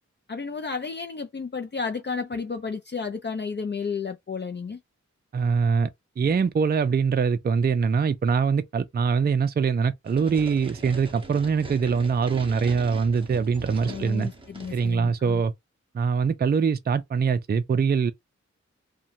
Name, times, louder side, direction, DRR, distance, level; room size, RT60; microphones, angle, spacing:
voice 1, 0.3-4.8 13.8-15.4, left 5 dB, 40° left, 0.4 m, -32 dB
voice 2, 5.3-5.9 6.2-14.3 14.7-15.5 15.9-18.1, right 5 dB, 35° right, 0.4 m, -23 dB
sound 1, 10.0-15.0, right 2 dB, 15° right, 0.8 m, -41 dB
2.8 x 2.2 x 2.5 m
wide cardioid pair, 65°, 29 cm